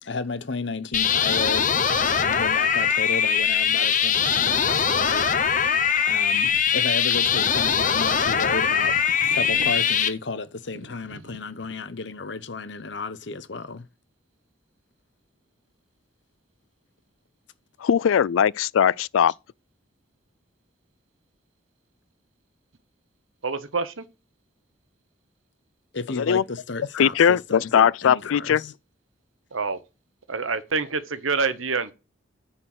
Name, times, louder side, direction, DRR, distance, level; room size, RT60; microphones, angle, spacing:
voice 1, 0.0-5.3 5.6-9.0 9.3-13.8 25.9-28.7, left 3 dB, 60° left, 0.9 m, -33 dB
sound 1, 0.9-10.1, left 7 dB, 40° left, 0.9 m, -22 dB
voice 2, 9.2-9.7 11.1-11.3 23.4-24.0 29.5-29.8 30.3-31.9, right 4 dB, 90° right, 1.1 m, -28 dB
voice 3, 17.8-19.3 26.2-26.4 26.9-28.7, left 8 dB, 85° left, 0.4 m, -20 dB
9.8 x 4.5 x 6.0 m
head